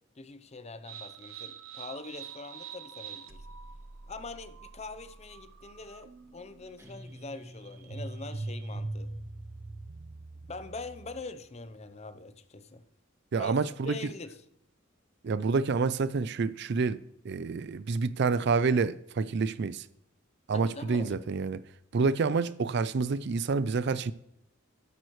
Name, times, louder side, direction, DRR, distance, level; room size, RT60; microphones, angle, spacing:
voice 1, 0.2-3.5 4.1-9.1 10.4-12.8 13.4-14.4 20.5-21.3, left 3 dB, 30° left, 0.7 m, -43 dB
sound 1, 0.9-11.5, right 3 dB, 80° right, 0.8 m, -43 dB
Guitar, 6.8-9.4, equal, 15° right, 1.1 m, -51 dB
voice 2, 13.3-14.0 15.2-19.8 20.5-21.6 21.9-24.1, right 4 dB, 55° right, 0.4 m, -28 dB
12.0 x 11.0 x 3.1 m
head